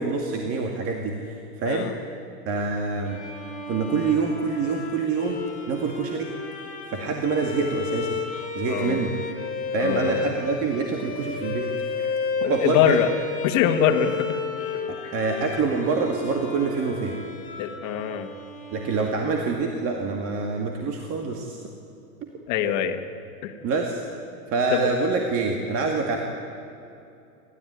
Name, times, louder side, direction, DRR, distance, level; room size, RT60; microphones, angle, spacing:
voice 1, 0.0-1.9 2.5-3.2 3.7-5.4 5.7-6.3 6.9-8.2 8.5-9.1 9.7-12.1 12.5-13.0 14.9-17.2 18.7-21.6 22.2-22.3 23.6-24.0 24.5-26.2, right 4 dB, 30° right, 2 dB, 2.2 m, -26 dB
Bowed string instrument, 3.1-19.6, left 4 dB, 20° left, 4.0 m, -33 dB
voice 2, 8.7-9.0 9.8-10.2 12.4-13.1 13.4-14.4 17.6-18.3 22.5-23.0 23.4-23.5 24.7-24.9, left 10 dB, 40° left, 6 dB, 2.0 m, -23 dB
29.5 x 13.5 x 9.6 m, 2.7 s
hypercardioid pair, 125°, 44 cm